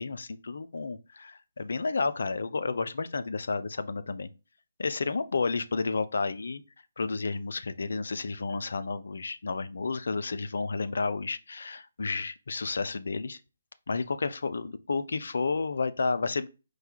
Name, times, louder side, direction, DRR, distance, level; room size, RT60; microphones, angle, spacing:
voice 1, 0.0-4.3 4.8-6.6 7.0-13.4 13.9-16.5, left 4 dB, 70° left, 0.4 m, -31 dB
4.6 x 2.2 x 4.4 m
figure-of-eight pair, 145°, 0 cm